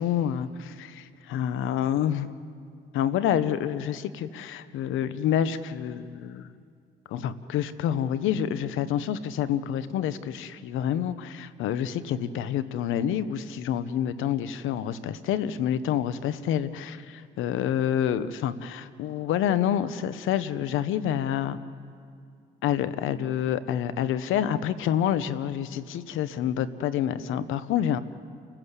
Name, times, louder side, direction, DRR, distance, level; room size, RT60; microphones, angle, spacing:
voice 1, 0.0-2.3 2.9-6.5 7.1-21.6 22.6-28.0, left 9 dB, 90° left, 14 dB, 0.9 m, -28 dB
29.5 x 15.0 x 8.2 m, 2.3 s
cardioid pair, 90°, 20 cm